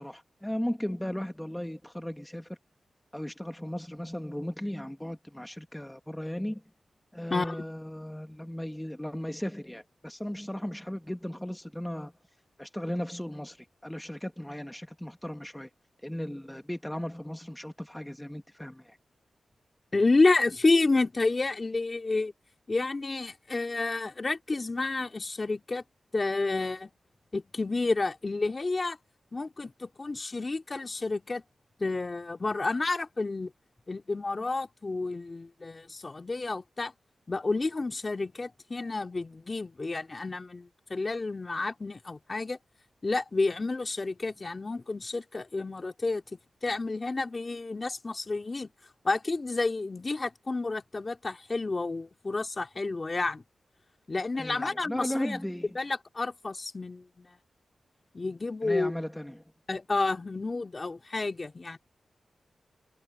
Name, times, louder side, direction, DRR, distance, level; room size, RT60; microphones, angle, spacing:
voice 1, 0.0-2.6 3.1-6.6 7.1-12.1 12.6-15.7 16.0-19.0 54.4-55.8 58.6-59.4, left 1 dB, 5° left, 1.4 m, -36 dB
voice 2, 19.9-22.3 22.7-25.8 26.1-26.9 27.3-29.0 29.3-31.4 31.8-33.5 33.9-36.9 37.3-42.6 43.0-46.2 46.6-48.7 49.0-53.4 54.1-55.4 55.7-57.4 58.1-58.9 59.7-61.8, left 3 dB, 40° left, 2.5 m, -30 dB
cardioid pair, 60°, 0 cm